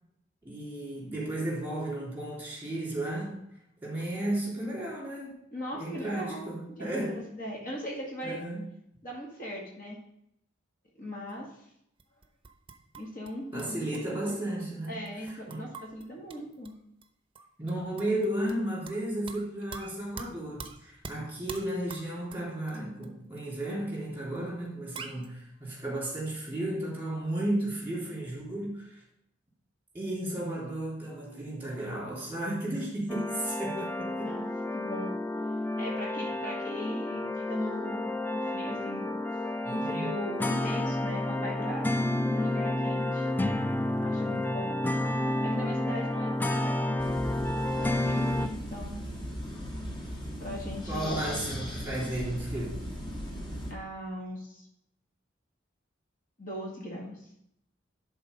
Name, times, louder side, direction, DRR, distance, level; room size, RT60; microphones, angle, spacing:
voice 1, 0.4-3.4 3.8-5.3 5.8-7.2 8.2-8.6 13.5-15.6 17.6-29.0 29.9-34.3 35.7-35.8 39.6-40.1 44.4-44.5 50.9-52.8, right 1 dB, 10° right, -5 dB, 3.3 m, -34 dB
voice 2, 5.5-8.4 9.0-10.0 11.0-11.5 13.0-14.4 14.9-16.7 34.2-34.4 34.7-35.1 35.8-38.0 38.3-39.1 39.7-41.9 42.3-43.3 44.0-44.7 45.4-47.0 47.8-49.1 50.4-51.3 53.7-54.7 56.4-57.3, equal, 45° left, -3 dB, 2.0 m, -39 dB
sound 1, 12.0-13.3 13.6-16.7 17.0-17.1 17.4-19.0 19.3-23.1 23.4-23.5 23.7-23.8 24.4-24.5 24.6-24.7 25.0-25.3, right 5 dB, 30° right, 0.7 m, -44 dB
sound 2, 33.1-48.5, left 1 dB, 10° left, 0.4 m, -30 dB
sound 3, 47.0-53.7, equal, 25° left, 1.6 m, -38 dB
11.0 x 4.0 x 5.3 m, 0.76 s
head